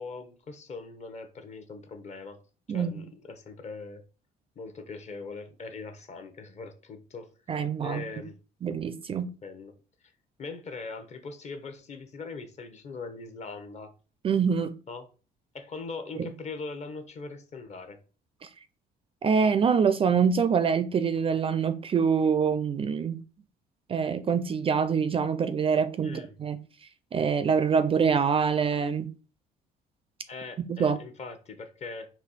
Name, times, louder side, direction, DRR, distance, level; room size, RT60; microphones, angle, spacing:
voice 1, 0.0-2.4 2.7-4.0 4.6-7.3 7.8-8.3 9.4-9.8 10.4-13.9 14.9-15.1 15.5-18.0 26.0-26.3 30.3-32.1, left 4 dB, 40° left, 8 dB, 0.9 m, -41 dB
voice 2, 2.7-3.0 7.5-8.0 8.6-9.3 14.2-14.7 18.4-18.5 19.2-23.2 23.9-26.6 27.1-29.1 30.6-31.0, right 6 dB, 35° right, 12 dB, 0.4 m, -25 dB
4.3 x 2.7 x 4.0 m, 0.36 s
cardioid pair, 110°, 17 cm